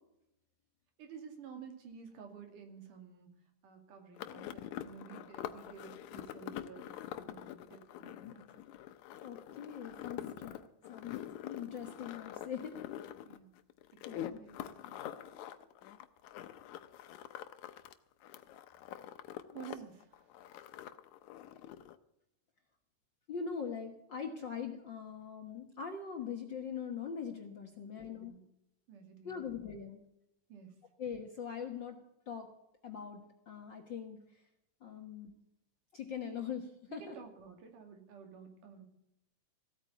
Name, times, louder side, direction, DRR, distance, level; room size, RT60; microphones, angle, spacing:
voice 1, 1.0-3.3 3.6-8.5 10.3-10.5 13.2-13.6 13.9-15.0 19.1-19.2 19.5-20.3 27.7-28.4 28.9-29.5 30.5-30.8 36.9-38.8, right 7 dB, 80° right, 5 dB, 3.9 m, -52 dB
sound 1, 4.2-17.9 18.2-19.8 20.0-22.0, left 12 dB, 75° left, 2.1 m, -45 dB
voice 2, 9.2-12.8 14.0-14.4 19.5-19.6 23.3-28.3 29.2-30.0 31.0-32.0 32.3-32.5 32.8-34.4 34.8-35.3 35.9-37.1, left 7 dB, 50° left, 3 dB, 1.5 m, -42 dB
16.0 x 9.0 x 8.1 m, 0.82 s
omnidirectional pair, 3.7 m